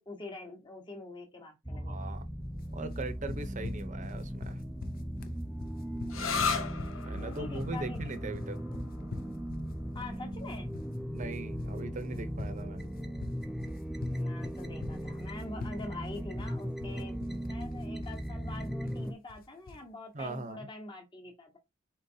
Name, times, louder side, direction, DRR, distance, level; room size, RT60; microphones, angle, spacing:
voice 1, 0.0-2.1 6.0-6.7 7.2-8.0 8.8-8.9 9.9-10.7 14.1-17.2 17.5-21.6, left 2 dB, 25° left, 1.1 m, -45 dB
sound 1, 1.7-19.1, equal, ahead, 0.3 m, -38 dB
voice 2, 1.9-2.2 2.7-4.6 7.1-8.6 11.1-12.9 20.1-20.7, right 2 dB, 40° right, 0.7 m, -40 dB
sound 2, 2.9-19.9, left 3 dB, 45° left, 0.6 m, -44 dB
sound 3, 6.1-13.5, left 5 dB, 75° left, 0.8 m, -39 dB
4.4 x 3.9 x 2.7 m
head